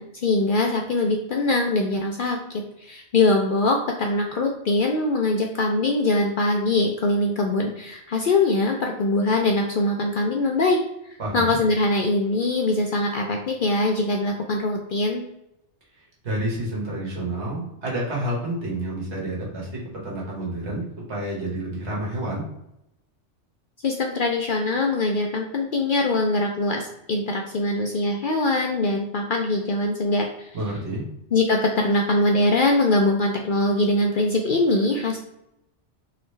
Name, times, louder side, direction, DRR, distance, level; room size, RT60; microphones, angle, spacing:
voice 1, 0.0-15.2 23.8-30.6 31.3-35.2, left 2 dB, 60° left, 1 dB, 0.6 m, -22 dB
voice 2, 11.2-11.6 16.2-19.7 20.0-22.4 30.5-31.1, right 1 dB, 65° right, -4 dB, 1.7 m, -29 dB
3.8 x 3.0 x 3.2 m, 0.82 s
omnidirectional pair, 1.2 m